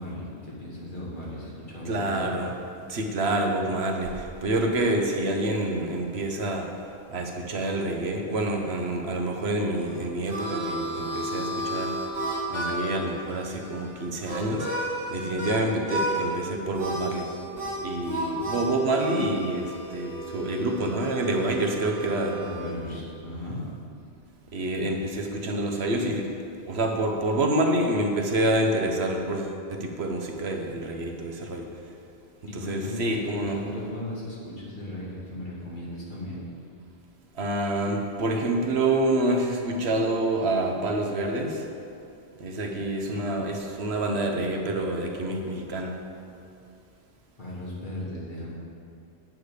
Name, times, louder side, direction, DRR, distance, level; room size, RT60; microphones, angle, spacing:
voice 1, 0.0-2.3 22.3-23.7 24.5-24.6 32.5-36.4 47.4-48.6, left 1 dB, 50° left, -6 dB, 2.4 m, -36 dB
voice 2, 1.8-2.5 2.9-6.7 7.1-11.9 12.5-14.7 15.1-22.4 22.9-23.0 24.5-26.4 26.7-31.7 32.7-33.6 37.3-41.7 42.4-46.0, right 1 dB, 75° right, 2 dB, 1.2 m, -27 dB
Harmonica, 9.8-15.6 15.9-16.4 16.7-22.8, right 1 dB, 55° right, 2.1 m, -33 dB
9.2 x 8.1 x 5.0 m, 2.5 s
omnidirectional pair, 1.1 m